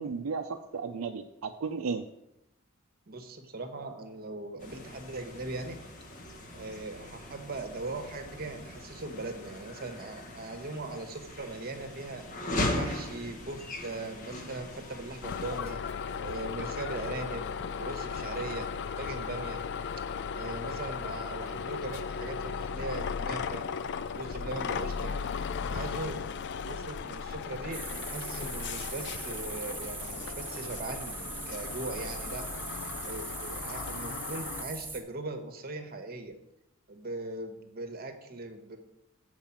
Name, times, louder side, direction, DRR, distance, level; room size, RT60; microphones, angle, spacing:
voice 1, 0.0-2.0, right 5 dB, 85° right, 4 dB, 0.5 m, -34 dB
voice 2, 3.1-5.8 6.5-12.2 12.7-15.8 16.2-17.5 17.7-18.7 19.0-19.6 20.3-23.6 24.1-25.1 25.7-26.2 26.6-27.8 28.1-32.4 33.0-36.3 36.9-38.8, right 2 dB, 45° right, 6 dB, 1.1 m, -39 dB
sound 1, 4.6-15.6, left 1 dB, 40° left, 1.1 m, -39 dB
sound 2, 15.2-34.6, left 6 dB, 55° left, 0.4 m, -36 dB
sound 3, 27.7-35.0, right 3 dB, 10° right, 0.9 m, -40 dB
7.3 x 4.8 x 7.2 m, 0.86 s
head